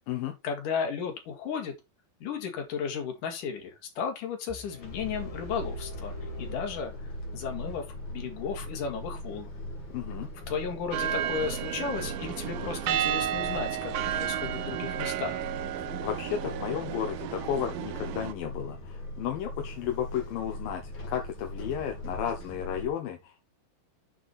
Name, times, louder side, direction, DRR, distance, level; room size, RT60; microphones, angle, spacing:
voice 1, 0.4-1.7 2.2-6.9 7.3-9.5 10.5-15.4, left 6 dB, 65° left, 3.6 m, -34 dB
sound 1, 4.5-7.5, left 5 dB, 15° left, 1.2 m, -47 dB
sound 2, 4.8-22.9, left 1 dB, 35° left, 2.8 m, -40 dB
voice 2, 9.9-10.3 16.0-23.4, left 9 dB, 80° left, 2.9 m, -33 dB
sound 3, 10.9-18.3, right 11 dB, 85° right, 2.6 m, -32 dB
8.6 x 6.3 x 4.2 m
omnidirectional pair, 4.0 m